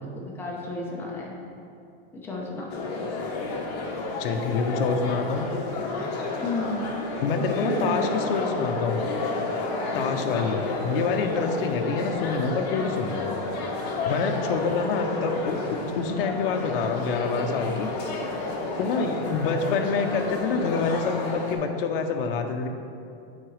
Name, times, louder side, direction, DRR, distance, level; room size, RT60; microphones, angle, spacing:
voice 1, 0.0-1.4 2.1-2.7 6.4-6.8 7.1-7.2 7.6-8.1 9.9-10.5 14.2-14.3, left 2 dB, 5° left, -4 dB, 0.6 m, -33 dB
sound 1, 2.7-21.6, left 2 dB, 40° left, 1.0 m, -30 dB
voice 2, 4.2-5.5 7.2-9.0 9.9-13.3 14.0-17.9 18.8-22.7, left 5 dB, 65° left, 5 dB, 0.6 m, -27 dB
9.4 x 4.0 x 3.1 m, 2.5 s
supercardioid pair, 165°, 30 cm